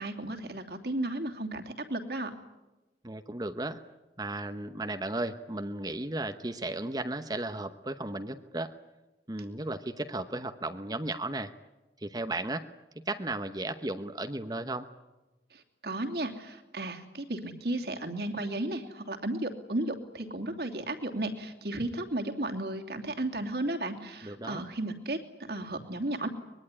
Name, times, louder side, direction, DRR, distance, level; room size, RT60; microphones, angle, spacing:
voice 1, 0.0-2.3 15.5-25.2 25.5-26.3, right 1 dB, 60° right, 3 dB, 2.9 m, -34 dB
voice 2, 3.0-3.8 4.2-8.7 9.3-11.5 12.0-12.7 13.1-14.9 24.2-24.7, right 2 dB, 20° right, 8 dB, 0.9 m, -35 dB
24.0 x 21.5 x 9.9 m, 1.1 s
head